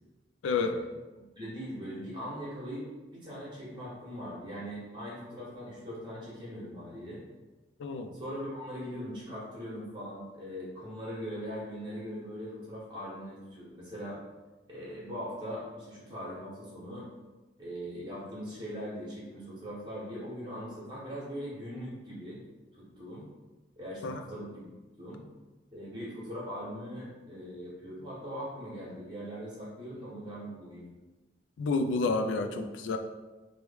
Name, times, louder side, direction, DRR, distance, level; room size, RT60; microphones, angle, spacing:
voice 1, 0.5-0.8 1.4-2.9 3.1-7.2 8.1-14.2 14.7-17.1 17.6-22.4 22.7-23.3 23.7-24.6 25.0-25.2 25.7-30.9, equal, 25° right, -7 dB, 1.1 m, -40 dB
voice 2, 7.8-8.1 24.0-24.2 31.6-33.0, left 4 dB, 90° left, 7 dB, 0.3 m, -29 dB
3.1 x 2.2 x 3.3 m, 1.2 s
head